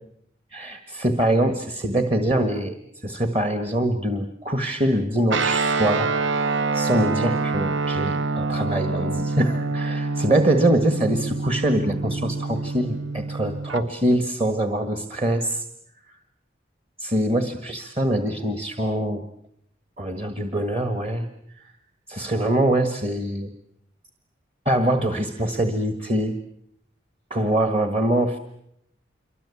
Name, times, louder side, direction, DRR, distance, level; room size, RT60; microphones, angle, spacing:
voice 1, 0.5-6.2 6.7-15.7 17.0-19.3 20.0-21.3 21.6-21.7 22.1-23.5 24.6-26.4 27.3-28.4, right 1 dB, 30° right, 8 dB, 1.7 m, -24 dB
Guitar, 5.3-13.8, right 3 dB, 80° right, 1.0 m, -26 dB
27.0 x 24.5 x 8.5 m, 0.73 s
head